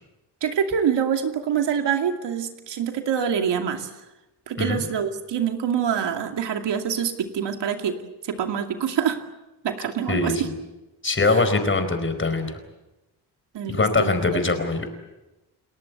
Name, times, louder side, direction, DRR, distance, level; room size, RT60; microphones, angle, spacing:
voice 1, 0.4-3.9 4.5-8.0 8.2-9.2 9.6-10.5 11.2-11.3 13.5-14.1, right 8 dB, 85° right, 5 dB, 2.6 m, -25 dB
voice 2, 10.1-10.5 11.0-12.6 13.7-14.9, left 3 dB, 30° left, 9 dB, 4.5 m, -22 dB
30.0 x 18.5 x 8.2 m, 1.0 s
cardioid pair, 115°, 41 cm